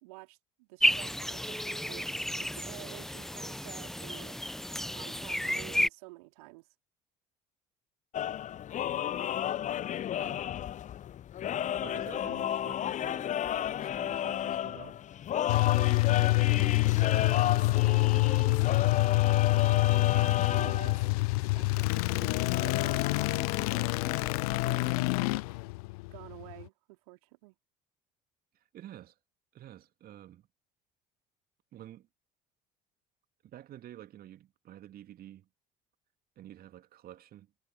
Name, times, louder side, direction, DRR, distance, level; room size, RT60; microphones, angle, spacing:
voice 1, 0.0-2.1 2.4-4.4 4.9-6.7 19.6-21.0 21.4-24.2 24.7-25.0 26.1-27.5, right 25 dB, 65° right, 2.5 m, -50 dB
sound 1, 0.8-5.9, left 1 dB, ahead, 0.7 m, -32 dB
sound 2, 8.1-25.3, left 11 dB, 35° left, 0.8 m, -33 dB
voice 2, 10.1-10.5 11.8-13.4 13.6-15.0 15.7-16.1 16.5-18.6 28.5-29.1 29.5-30.5 31.7-32.1 33.4-35.5 36.4-37.5, right 12 dB, 45° right, 2.5 m, -50 dB
sound 3, 15.5-26.6, left 24 dB, 65° left, 0.5 m, -27 dB
figure-of-eight pair, 55°, 21 cm